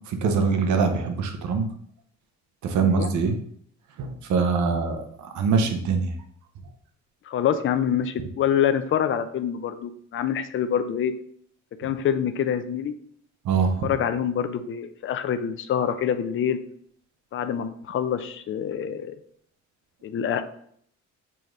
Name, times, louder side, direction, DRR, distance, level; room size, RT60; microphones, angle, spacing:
voice 1, 0.1-1.7 2.6-3.3 4.0-6.1 13.4-13.9, right 5 dB, 70° right, 6 dB, 0.8 m, -23 dB
voice 2, 7.3-11.1 11.8-12.9 13.8-16.6 17.3-19.1 20.0-20.4, left 9 dB, 45° left, 10 dB, 0.5 m, -26 dB
6.9 x 2.5 x 3.1 m, 0.64 s
cardioid pair, 90°, 30 cm